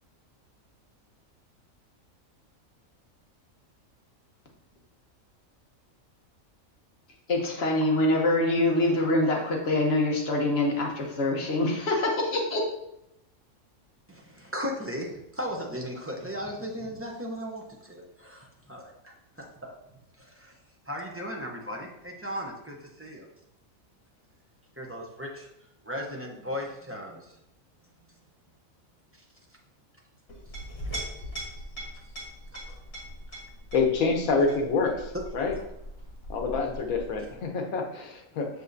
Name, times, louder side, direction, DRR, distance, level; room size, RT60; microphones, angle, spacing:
voice 1, 7.3-12.6, left 2 dB, 50° left, 0 dB, 1.3 m, -25 dB
voice 2, 14.1-19.7 20.2-20.5 20.9-23.3 24.8-25.5 25.8-27.3 35.1-35.2 35.5-35.7 37.5-37.6, equal, 15° right, -2 dB, 0.5 m, -37 dB
Chink clink, 30.3-37.4, equal, 70° left, 2.6 m, -40 dB
voice 3, 33.7-35.5 36.3-38.5, left 4 dB, 90° left, 3 dB, 1.3 m, -27 dB
6.5 x 5.4 x 2.6 m, 0.83 s
omnidirectional pair, 1.4 m